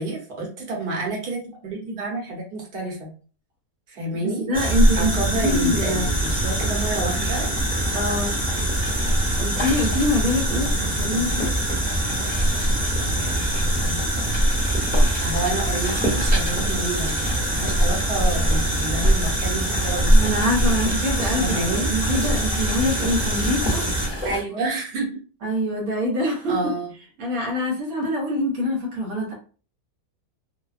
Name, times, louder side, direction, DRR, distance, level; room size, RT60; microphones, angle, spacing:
voice 1, 0.0-3.1 3.9-4.4 5.0-7.5 15.2-17.2 17.4-20.1 21.4-21.9 24.2-25.1 26.5-26.9, right 2 dB, 45° right, -2 dB, 1.0 m, -29 dB
voice 2, 4.2-6.1 7.9-8.4 9.4-11.5 20.1-23.9 25.4-26.7 27.2-29.3, left 1 dB, 75° right, -1 dB, 1.2 m, -25 dB
sound 1, 4.5-24.4, right 1 dB, 5° right, 0.8 m, -22 dB
sound 2, 9.4-14.1, left 2 dB, 45° left, 0.8 m, -38 dB
2.6 x 2.2 x 2.4 m, 0.38 s
omnidirectional pair, 1.5 m